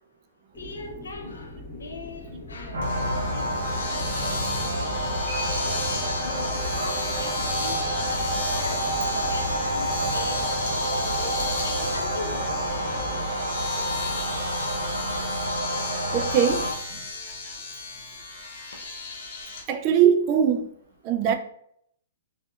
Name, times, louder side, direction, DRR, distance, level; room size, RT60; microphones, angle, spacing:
sound 1, 0.5-13.3, left 1 dB, 15° left, 0.9 m, -41 dB
voice 1, 0.6-3.9 4.1-7.8 8.4-8.9 9.1-10.5 10.7-12.4, left 3 dB, 90° left, 0.4 m, -40 dB
sound 2, 2.7-16.7, right 1 dB, 80° right, 0.6 m, -28 dB
Domestic sounds home sounds, 2.8-19.6, left 3 dB, 70° left, 0.9 m, -34 dB
voice 2, 16.1-16.7 19.7-20.7 21.0-21.3, right 8 dB, 35° right, 0.3 m, -21 dB
2.7 x 2.4 x 2.2 m
hypercardioid pair, 135°, 0 cm